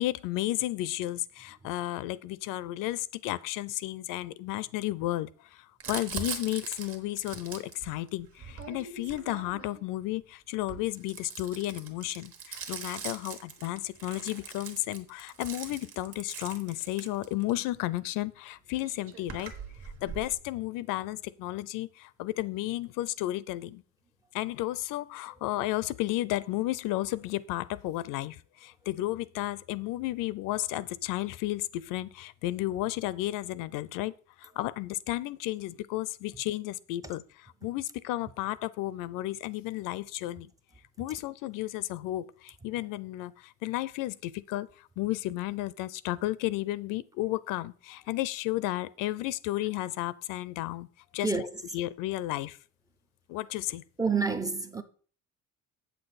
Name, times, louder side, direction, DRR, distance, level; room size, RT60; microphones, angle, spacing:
voice 1, 0.0-19.5 20.0-23.8 24.3-34.1 34.4-40.5 41.0-50.9 51.1-51.5 51.7-52.6 53.3-53.8, left 16 dB, 75° left, 0.5 m, -33 dB
Crumpling crinkling, 5.8-9.8 10.5-17.6 18.5-18.6 18.7-20.3, right 6 dB, 45° right, 1.3 m, -41 dB
voice 2, 54.0-54.8, right 4 dB, 10° right, 0.4 m, -28 dB
8.2 x 6.8 x 4.0 m
cardioid pair, 160°, 32 cm